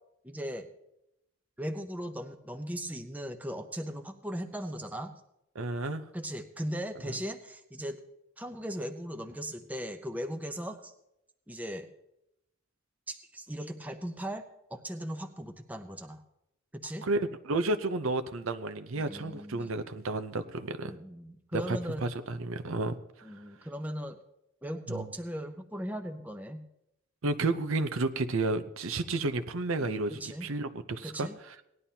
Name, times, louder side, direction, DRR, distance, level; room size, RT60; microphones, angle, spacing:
voice 1, 0.2-0.7 1.6-5.1 6.1-8.0 8.4-10.9 11.5-11.9 13.1-14.4 14.7-16.2 16.7-17.1 19.0-19.7 20.8-22.1 23.2-24.2 24.6-26.6 29.8-30.5 31.0-31.4, equal, 10° right, 5 dB, 0.7 m, -38 dB
voice 2, 5.5-6.0 7.1-7.2 17.0-20.9 21.5-23.3 24.9-25.1 27.2-31.3, right 2 dB, 80° right, 9 dB, 0.7 m, -32 dB
18.0 x 11.0 x 2.8 m, 0.82 s
head